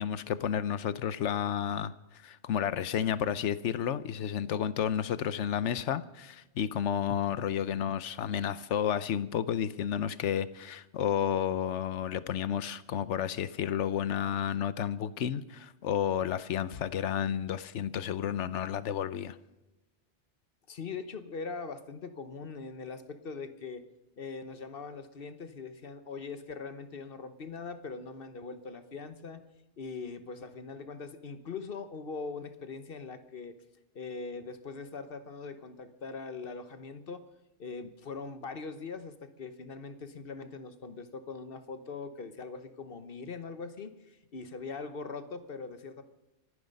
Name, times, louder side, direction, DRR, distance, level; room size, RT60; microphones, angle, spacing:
voice 1, 0.0-1.9 2.2-19.4, left 9 dB, 80° left, 1.1 m, -31 dB
voice 2, 20.7-23.8 24.2-29.4 29.8-33.6 33.9-37.2 37.6-46.0, left 4 dB, 55° left, 1.2 m, -41 dB
25.5 x 9.8 x 5.4 m
omnidirectional pair, 1.2 m